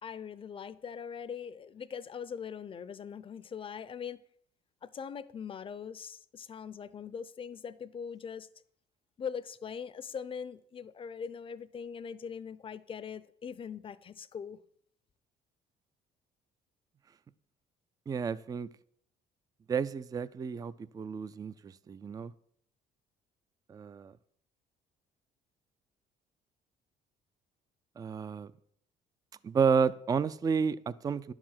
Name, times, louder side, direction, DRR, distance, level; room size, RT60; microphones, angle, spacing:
voice 1, 0.0-4.2 4.8-8.5 9.2-14.6, left 7 dB, 30° left, 0.6 m, -41 dB
voice 2, 18.1-18.7 19.7-22.3 23.7-24.1 28.0-28.5 29.4-31.3, right 6 dB, 20° right, 0.4 m, -31 dB
11.0 x 4.9 x 7.4 m
cardioid pair, 110°, 17 cm